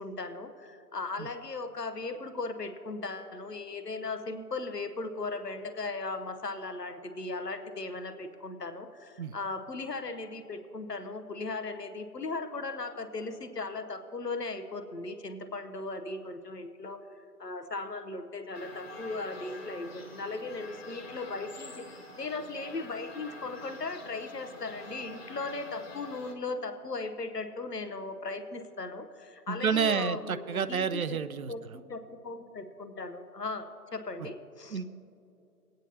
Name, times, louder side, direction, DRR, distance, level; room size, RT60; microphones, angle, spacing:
voice 1, 0.0-17.1 17.4-21.9 22.2-31.2 31.5-34.8, left 3 dB, 90° left, 9 dB, 1.0 m, -37 dB
sound 1, 18.5-26.3, left 2 dB, 40° left, 1.0 m, -46 dB
voice 2, 29.5-31.5 34.7-34.9, right 6 dB, 65° right, 13 dB, 0.5 m, -29 dB
18.5 x 9.0 x 2.8 m, 2.6 s
figure-of-eight pair, 145°, 47 cm